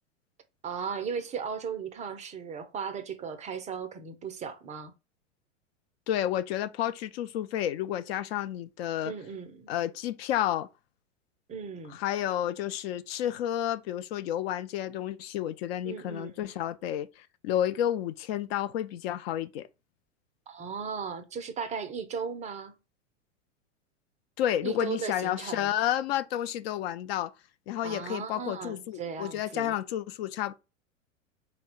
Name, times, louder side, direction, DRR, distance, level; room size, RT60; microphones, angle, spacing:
voice 1, 0.6-4.9 9.0-9.7 11.5-12.0 15.8-16.5 20.5-22.7 24.6-25.7 27.8-29.8, right 6 dB, 20° right, 0.4 m, -36 dB
voice 2, 6.1-9.1 9.7-10.7 11.9-19.7 24.4-27.3 27.7-30.5, left 11 dB, 55° left, 0.4 m, -31 dB
3.7 x 2.1 x 4.2 m
hypercardioid pair, 95°, 37 cm